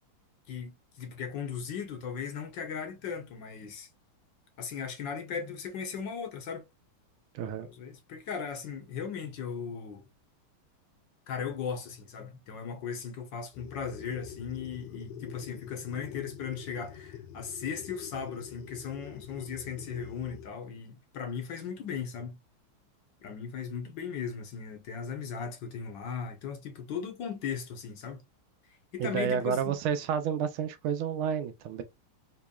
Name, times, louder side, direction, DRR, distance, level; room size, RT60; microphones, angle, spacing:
voice 1, 0.5-3.9 4.6-6.6 7.6-10.0 11.3-22.4 23.2-28.2 28.9-29.8, left 6 dB, 65° left, 1.5 m, -37 dB
voice 2, 7.3-7.7 29.0-31.8, right 7 dB, 80° right, 1.5 m, -30 dB
sound 1, 13.5-20.5, left 10 dB, 80° left, 1.0 m, -46 dB
4.5 x 3.0 x 2.2 m
omnidirectional pair, 2.4 m